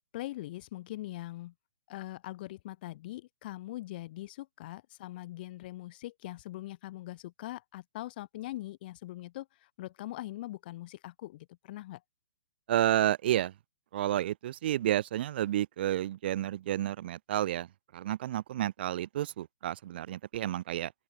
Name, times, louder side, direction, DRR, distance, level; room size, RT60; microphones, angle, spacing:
voice 1, 0.1-1.5 1.9-12.0, left 16 dB, 40° left, 3.2 m, -42 dB
voice 2, 12.7-13.5 13.9-17.7 17.9-20.9, right 12 dB, 45° right, 1.1 m, -30 dB
open air
figure-of-eight pair, 120°, 8 cm